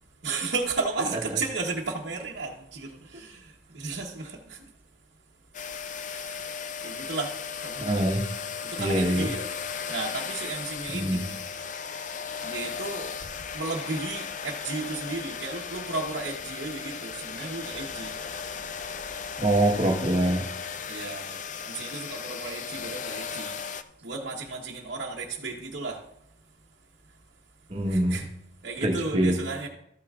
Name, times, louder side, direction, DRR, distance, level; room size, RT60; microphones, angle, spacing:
voice 1, 0.2-4.6 6.1-6.5 6.8-8.0 8.6-9.5 9.9-11.4 12.4-13.1 13.5-18.1 20.9-23.6 24.0-26.0 27.9-28.3 28.6-29.7, right 3 dB, 60° right, 1.0 m, -34 dB
sound 1, 5.5-23.8, left 6 dB, 40° left, 0.4 m, -36 dB
voice 2, 7.8-8.2 8.8-9.3 10.9-11.2 19.4-20.4 27.7-28.2 28.8-29.3, right 1 dB, 30° right, 1.2 m, -24 dB
13.5 x 8.8 x 2.4 m
head